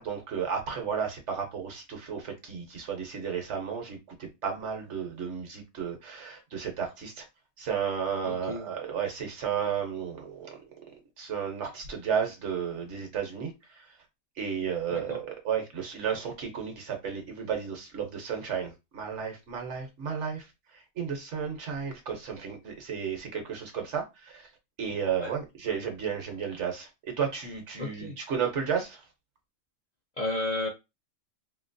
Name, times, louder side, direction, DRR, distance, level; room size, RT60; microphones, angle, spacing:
voice 1, 0.0-7.3 7.6-10.6 11.2-13.9 14.4-20.5 20.7-24.5 24.8-29.0, right 7 dB, 65° right, 1.2 m, -33 dB
voice 2, 8.2-8.7 14.9-15.2 25.2-25.3 27.8-28.2 30.2-30.7, left 2 dB, 45° left, 0.6 m, -33 dB
2.9 x 2.9 x 2.6 m
omnidirectional pair, 1.3 m